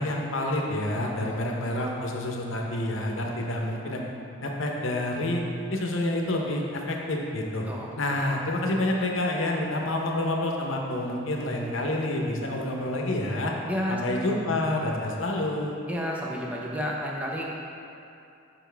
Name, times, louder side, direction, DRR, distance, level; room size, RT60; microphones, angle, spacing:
voice 1, 0.0-4.0 4.4-5.4 5.7-7.7 8.0-13.5 13.9-15.7, left 1 dB, 80° left, 0 dB, 0.8 m, -28 dB
voice 2, 13.7-14.0 14.3-14.5 15.9-17.5, equal, 5° right, -3 dB, 0.7 m, -31 dB
7.0 x 5.7 x 3.4 m, 2.7 s
head